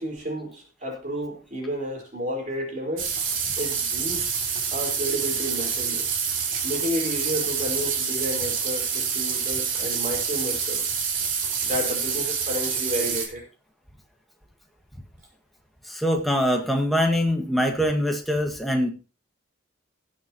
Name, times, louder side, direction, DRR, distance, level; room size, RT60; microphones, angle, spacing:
voice 1, 0.0-3.1 3.6-4.3 4.7-6.0 6.6-10.9 11.6-13.4, equal, 40° right, 0 dB, 4.5 m, -31 dB
sound 1, 3.0-13.3, right 6 dB, 75° right, 3.0 m, -27 dB
voice 2, 15.9-18.9, equal, ahead, 2 dB, 1.7 m, -23 dB
19.5 x 7.5 x 3.0 m, 0.33 s
head